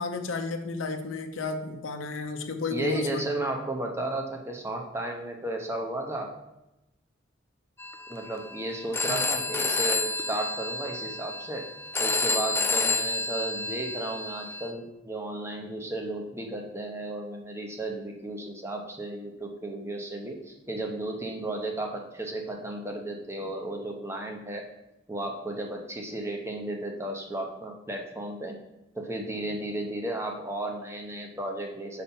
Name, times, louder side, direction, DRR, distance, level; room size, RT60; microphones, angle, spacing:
voice 1, 0.0-3.2 9.1-9.3, left 4 dB, 85° left, 7 dB, 0.7 m, -32 dB
voice 2, 2.7-6.3 8.1-11.7 12.0-24.6 25.1-28.6 28.9-32.0, right 1 dB, 15° right, 2 dB, 0.7 m, -34 dB
Telephone, 7.8-14.7, left 3 dB, 10° left, 0.4 m, -30 dB
5.6 x 4.2 x 5.4 m, 0.94 s
head